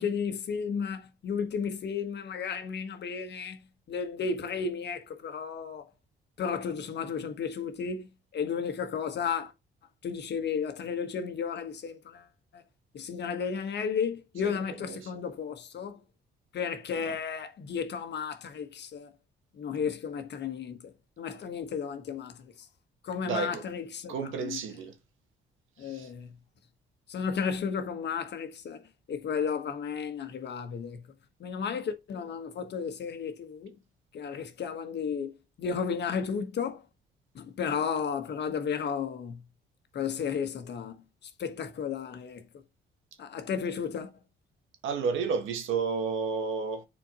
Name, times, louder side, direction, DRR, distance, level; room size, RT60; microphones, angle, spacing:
voice 1, 0.0-3.6 3.9-5.9 6.4-9.5 10.0-12.3 12.5-12.6 12.9-16.0 16.5-19.1 19.5-20.9 21.2-22.7 23.0-24.6 25.8-26.4 27.1-28.8 29.1-31.1 31.4-33.7 34.1-36.8 37.3-39.4 39.9-42.4 43.2-44.1, left 6 dB, 60° left, 1.3 m, -33 dB
voice 2, 23.2-23.6 24.1-24.9 25.8-26.1 44.8-46.8, right 5 dB, 85° right, 1.5 m, -31 dB
7.5 x 4.4 x 2.9 m
cardioid pair, 90°, 20 cm